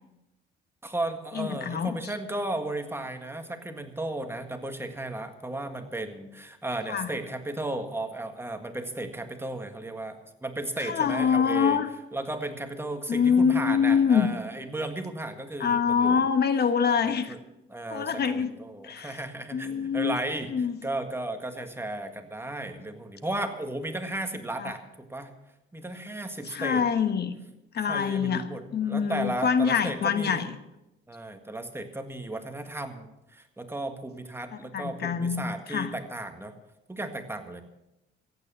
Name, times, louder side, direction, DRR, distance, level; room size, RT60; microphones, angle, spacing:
voice 1, 0.8-11.8 12.1-16.2 17.0-17.4 17.7-25.3 25.7-26.8 27.9-30.5 31.1-36.5 36.9-37.6, right 1 dB, 10° right, 6 dB, 1.7 m, -34 dB
voice 2, 1.3-2.0 6.9-7.1 10.8-11.9 13.1-14.3 15.6-17.3 17.9-18.5 18.8-19.2 19.5-20.2 20.5-20.7 24.6-24.7 26.4-27.3 27.7-28.4 28.7-30.5 34.7-35.9, left 6 dB, 55° left, 9 dB, 1.2 m, -25 dB
14.5 x 9.4 x 7.2 m, 0.94 s
cardioid pair, 90°, 20 cm